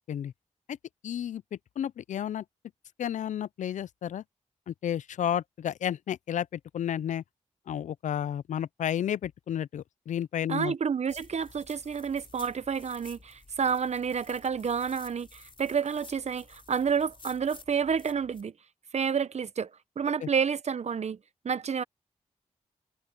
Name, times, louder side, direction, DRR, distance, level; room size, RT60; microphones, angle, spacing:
voice 1, 1.0-2.4 3.0-4.2 4.7-7.2 7.7-10.7 20.2-20.3, left 10 dB, 80° left, 0.5 m, -32 dB
voice 2, 10.5-18.5 18.9-19.7 20.0-21.2 21.4-21.8, right 6 dB, 65° right, 0.9 m, -29 dB
sound 1, 11.1-18.4, left 3 dB, 45° left, 4.5 m, -52 dB
cardioid pair, 45°, 12 cm